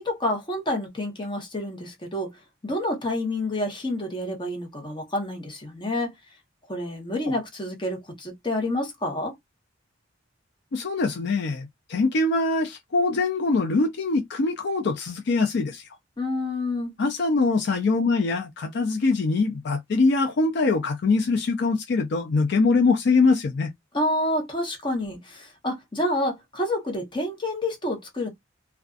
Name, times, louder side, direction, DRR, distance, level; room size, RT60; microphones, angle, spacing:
voice 1, 0.0-2.4 2.6-6.1 6.7-9.3 16.2-16.9 23.9-28.3, left 1 dB, 25° left, 0.9 m, -28 dB
voice 2, 10.7-15.9 17.0-23.7, left 3 dB, 60° left, 0.4 m, -23 dB
2.5 x 2.3 x 2.3 m
head